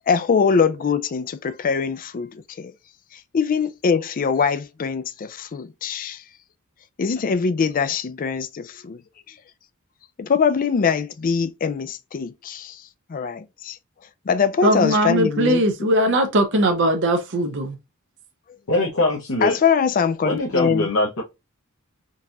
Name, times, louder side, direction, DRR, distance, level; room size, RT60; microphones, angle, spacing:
voice 1, 0.1-2.3 2.6-2.7 3.3-5.0 5.4-6.2 7.0-9.0 10.2-12.7 13.1-13.8 14.3-15.6 19.4-20.9, left 6 dB, 40° left, 0.4 m, -22 dB
voice 2, 14.6-17.8, right 1 dB, 55° right, 0.6 m, -20 dB
voice 3, 18.7-19.6 20.2-21.2, left 1 dB, 70° left, 0.9 m, -22 dB
3.8 x 2.5 x 2.7 m
head